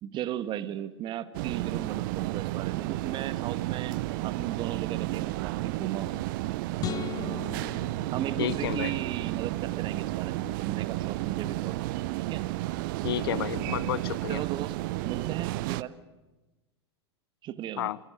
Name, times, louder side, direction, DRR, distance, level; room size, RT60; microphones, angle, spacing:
voice 1, 0.0-4.0 4.2-6.2 7.1-7.4 8.1-11.8 12.3-12.4 14.3-14.8 15.0-15.9 17.4-17.9, right 11 dB, 35° right, 1.7 m, -36 dB
sound 1, 1.3-15.8, right 18 dB, 50° right, 0.8 m, -32 dB
sound 2, 6.8-9.2, left 11 dB, 25° left, 0.8 m, -38 dB
voice 2, 8.4-9.0 13.0-14.4 17.8-18.0, left 13 dB, 60° left, 0.8 m, -31 dB
29.5 x 28.0 x 5.0 m
figure-of-eight pair, 90°, 14 cm